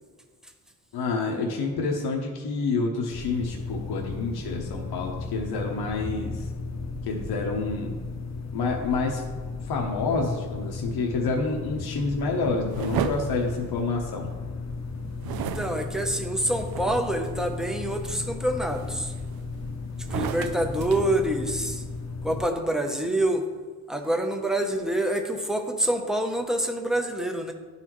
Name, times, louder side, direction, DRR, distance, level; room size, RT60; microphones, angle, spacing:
voice 1, 0.9-6.5 7.0-8.0 8.5-9.2 9.6-14.3, left 3 dB, 80° left, 0 dB, 0.9 m, -28 dB
sound 1, 3.1-22.4, left 3 dB, 45° left, 0.7 m, -35 dB
sound 2, 12.7-14.3 15.2-17.3 17.8-18.2 18.8-19.6 20.0-21.9, right 9 dB, 70° right, 0.5 m, -34 dB
voice 2, 15.3-19.1 20.1-21.8 22.2-23.5 23.9-27.5, right 1 dB, ahead, 3 dB, 0.7 m, -26 dB
11.5 x 4.1 x 3.0 m, 1.5 s
cardioid pair, 110°, 37 cm